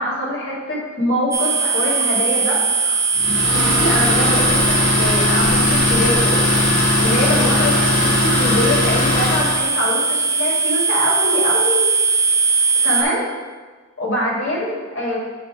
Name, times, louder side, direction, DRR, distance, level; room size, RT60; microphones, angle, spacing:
voice 1, 0.0-11.8 12.8-13.2 14.0-15.2, left 1 dB, 60° left, -4 dB, 2.0 m, -24 dB
sound 1, 1.3-13.0, right 3 dB, 15° right, 0.5 m, -20 dB
Idling, 3.2-9.7, left 2 dB, 80° left, 1.3 m, -19 dB
8.9 x 3.0 x 4.6 m, 1.4 s
head